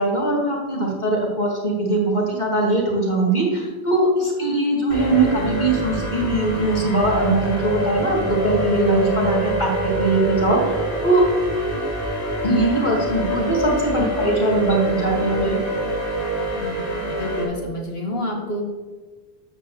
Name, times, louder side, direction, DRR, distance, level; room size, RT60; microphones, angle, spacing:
voice 1, 0.0-11.2 12.4-15.6, right 2 dB, 45° left, -2 dB, 2.7 m, -21 dB
sound 1, 4.9-17.4, equal, 90° left, 3.6 m, -26 dB
voice 2, 16.6-16.9 17.2-18.6, left 1 dB, 70° left, 1 dB, 2.4 m, -28 dB
12.5 x 5.4 x 7.8 m, 1.4 s
omnidirectional pair, 1.1 m